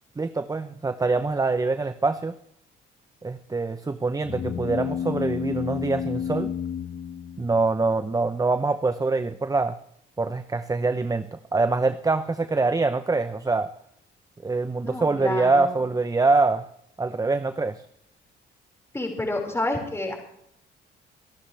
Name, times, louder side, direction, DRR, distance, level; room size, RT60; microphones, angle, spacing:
voice 1, 0.2-2.4 3.2-6.5 7.4-9.8 10.2-13.7 14.4-16.7 17.0-17.8, right 3 dB, 15° right, 11 dB, 0.7 m, -24 dB
sound 1, 4.2-7.9, left 8 dB, 60° left, 1.1 m, -31 dB
voice 2, 14.8-15.8 18.9-20.2, left 2 dB, 15° left, 1 dB, 4.8 m, -29 dB
25.0 x 11.5 x 3.3 m, 0.73 s
cardioid pair, 90°, 20 cm